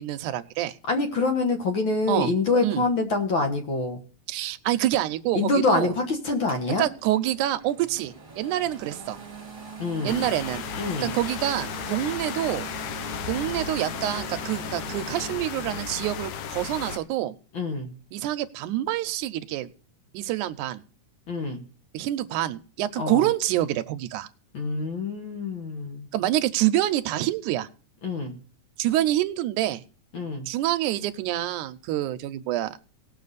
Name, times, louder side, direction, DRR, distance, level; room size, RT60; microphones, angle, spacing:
voice 1, 0.0-0.8 2.1-2.3 2.6-2.8 4.3-5.9 6.7-9.2 10.0-10.6 11.0-12.7 13.3-17.3 18.1-19.7 20.1-20.8 21.9-24.3 26.1-27.7 28.8-29.8 30.5-32.8, right 13 dB, 80° right, 9 dB, 2.0 m, -26 dB
voice 2, 0.9-4.0 5.3-6.9 9.8-10.3 10.8-11.1 17.5-17.9 21.3-21.6 23.0-23.2 24.5-26.1 28.0-28.4 30.1-30.5, left 3 dB, 50° left, 4 dB, 1.7 m, -26 dB
sound 1, 6.5-15.3, right 5 dB, 20° right, 1.9 m, -42 dB
sound 2, 10.1-17.0, left 8 dB, 75° left, 2.1 m, -34 dB
18.5 x 7.0 x 4.0 m, 0.39 s
omnidirectional pair, 3.7 m